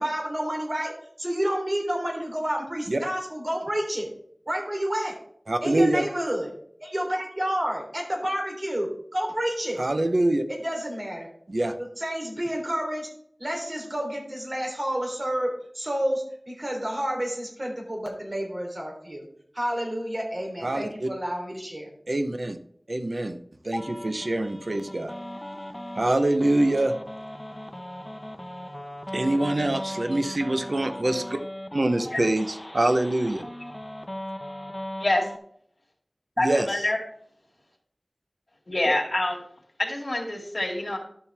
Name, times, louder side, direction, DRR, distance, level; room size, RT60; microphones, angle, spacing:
voice 1, 0.0-4.1 4.5-5.2 5.6-6.5 6.8-9.8 10.5-11.3 12.0-13.1 13.4-19.2 19.5-21.8, equal, 45° right, 0 dB, 3.3 m, -29 dB
voice 2, 5.5-6.0 9.8-10.4 11.5-11.8 20.6-21.1 22.1-22.6 22.9-23.4 23.7-25.1 26.0-26.9 29.1-31.4 31.7-33.4 36.4-36.8, right 1 dB, 65° right, 9 dB, 0.8 m, -24 dB
sound 1, 23.7-35.4, left 1 dB, 25° left, 1.0 m, -38 dB
voice 3, 36.4-37.0 38.7-39.4 39.8-41.0, left 1 dB, 55° left, -2 dB, 2.2 m, -26 dB
11.5 x 7.3 x 3.4 m, 0.65 s
wide cardioid pair, 45°, 0 cm